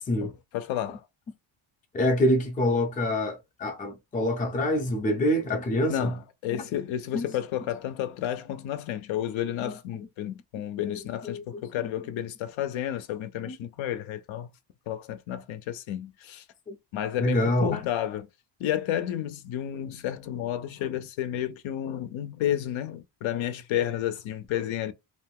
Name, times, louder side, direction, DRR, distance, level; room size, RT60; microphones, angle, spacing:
voice 1, 0.2-1.0 5.9-14.5 14.9-16.5 16.9-18.3 18.6-24.9, left 11 dB, 70° left, 0.6 m, -31 dB
voice 2, 1.9-6.1 7.1-7.3 9.6-9.7 11.2-11.4 13.5-13.6 16.7-16.8 17.2-17.8, left 1 dB, 15° left, 0.4 m, -26 dB
2.5 x 2.3 x 3.4 m
cardioid pair, 150°, 50 cm